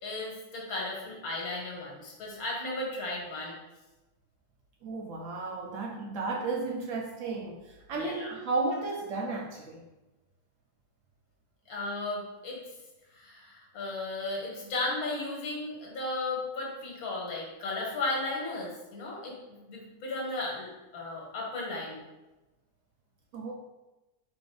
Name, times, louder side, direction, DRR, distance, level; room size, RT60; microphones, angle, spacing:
voice 1, 0.0-3.5 8.0-8.3 11.7-12.6 13.1-22.0, left 2 dB, 70° left, -3 dB, 1.5 m, -35 dB
voice 2, 4.8-9.9 23.3-23.5, right 3 dB, 65° right, 0 dB, 0.8 m, -33 dB
4.5 x 2.5 x 4.5 m, 1.1 s
omnidirectional pair, 1.7 m